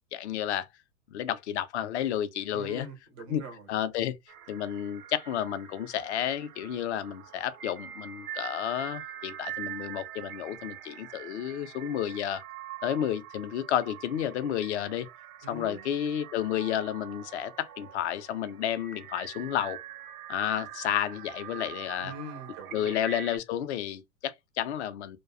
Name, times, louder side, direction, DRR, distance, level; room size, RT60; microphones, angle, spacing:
voice 1, 0.1-0.7 1.1-2.9 3.3-3.4 3.7-4.1 4.5-12.4 12.8-15.1 15.5-19.8 20.3-22.1 22.7-25.2, left 10 dB, 50° left, 0.5 m, -31 dB
voice 2, 2.5-3.7 15.4-15.8 22.0-23.1, right 2 dB, 20° right, 0.3 m, -43 dB
sound 1, 4.3-23.4, right 11 dB, 75° right, 0.6 m, -44 dB
2.4 x 2.2 x 2.4 m
hypercardioid pair, 115°, 44 cm